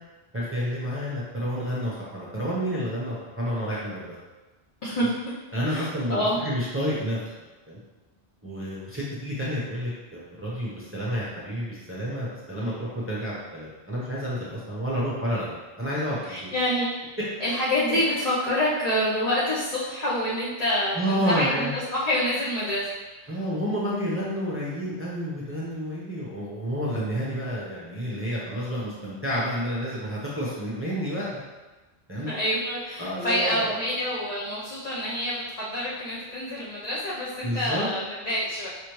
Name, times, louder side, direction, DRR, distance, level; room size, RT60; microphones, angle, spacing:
voice 1, 0.3-4.1 5.5-7.2 7.7-7.8 8.4-16.5 17.2-17.3 21.0-21.7 23.3-31.3 32.1-32.3 33.0-33.7 37.4-37.9, equal, 15° right, -7 dB, 0.7 m, -30 dB
voice 2, 4.8-5.2 5.7-6.4 16.2-16.9 17.4-22.9 23.2-23.4 32.3-38.7, left 1 dB, 40° left, -8 dB, 0.8 m, -27 dB
5.1 x 3.3 x 3.0 m, 1.2 s
omnidirectional pair, 1.1 m